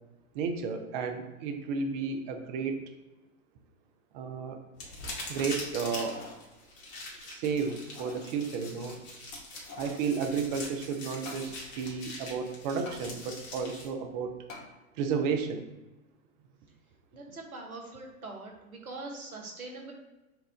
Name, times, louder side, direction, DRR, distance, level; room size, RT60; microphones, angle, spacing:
voice 1, 0.3-2.8 4.1-4.6 5.3-6.2 7.3-9.0 9.8-14.4 15.0-15.6, right 5 dB, 35° right, 5 dB, 0.5 m, -32 dB
sound 1, 4.8-13.9, left 2 dB, 35° left, 1.5 m, -43 dB
sound 2, 5.8-6.4 6.9-7.0 7.7-8.3 9.3-10.1 11.3-11.5 12.9-13.0 14.5-14.7 15.3-15.4, left 3 dB, 60° left, 1.2 m, -46 dB
voice 2, 17.1-19.9, right 2 dB, 85° right, 1 dB, 1.1 m, -43 dB
5.8 x 2.4 x 3.5 m, 1.1 s
figure-of-eight pair, 100°, 42 cm